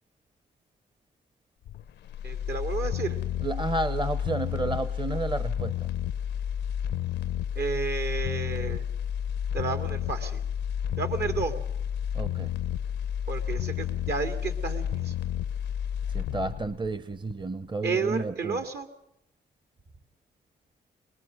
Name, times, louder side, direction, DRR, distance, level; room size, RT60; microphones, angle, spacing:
sound 1, 1.7-17.7 18.1-18.2, left 9 dB, 85° left, 0.7 m, -31 dB
voice 1, 2.2-3.2 7.6-8.9 9.5-10.4 11.0-11.6 13.3-15.2 17.8-18.9, right 5 dB, 70° right, 8 dB, 2.5 m, -31 dB
voice 2, 3.4-5.7 12.1-12.5 16.1-18.6, right 2 dB, 25° right, 15 dB, 0.9 m, -31 dB
22.0 x 20.0 x 6.5 m, 0.81 s
cardioid pair, 65°, 18 cm